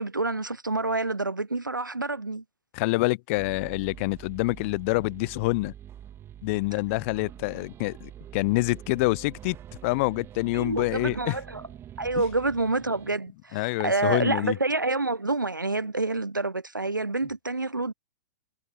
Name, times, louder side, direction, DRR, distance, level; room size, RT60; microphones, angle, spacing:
voice 1, 0.0-2.4 10.5-11.6 12.0-17.9, right 3 dB, 90° right, 0.9 m, -28 dB
voice 2, 2.7-5.7 6.4-9.6 9.8-11.4 13.5-14.6, left 24 dB, 40° left, 0.6 m, -26 dB
sound 1, 3.4-13.2, right 11 dB, 25° right, 1.9 m, -45 dB
figure-of-eight pair, 105°, 10 cm